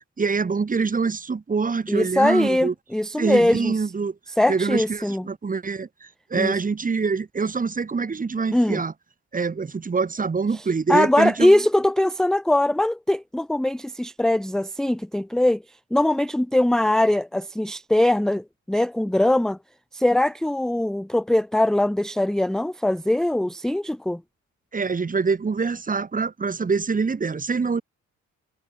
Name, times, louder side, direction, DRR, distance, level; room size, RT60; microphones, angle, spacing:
voice 1, 0.0-2.7 3.2-4.1 4.5-8.9 9.3-11.6 24.7-27.8, right 4 dB, 25° right, 1.7 m, -25 dB
voice 2, 1.9-3.7 4.4-5.2 6.3-6.6 8.5-8.8 10.9-15.6 15.9-19.6 19.9-24.2, left 1 dB, ahead, 0.6 m, -21 dB
cardioid pair, 90°, 30 cm